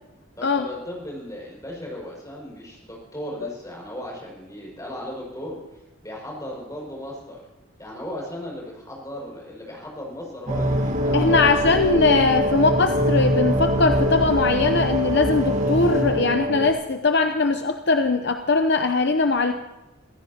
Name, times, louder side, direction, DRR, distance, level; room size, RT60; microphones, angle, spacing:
voice 1, 0.4-5.6 6.0-7.4 7.8-11.7, equal, 15° left, -2 dB, 6.1 m, -36 dB
sound 1, 10.5-16.7, equal, 35° right, 2.0 m, -23 dB
voice 2, 11.1-19.5, left 3 dB, 55° left, 6 dB, 0.7 m, -20 dB
27.0 x 15.0 x 2.9 m, 1.1 s
head